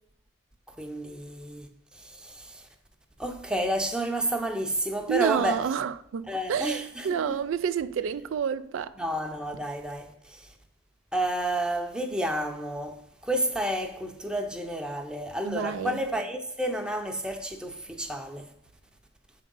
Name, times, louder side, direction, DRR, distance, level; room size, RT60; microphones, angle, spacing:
voice 1, 0.7-2.7 3.2-5.6 6.3-7.4 9.0-10.5 11.1-18.5, right 1 dB, 5° right, 0.6 m, -31 dB
voice 2, 5.1-9.0 15.4-16.0, right 7 dB, 85° right, 0.4 m, -29 dB
7.7 x 3.7 x 5.3 m
head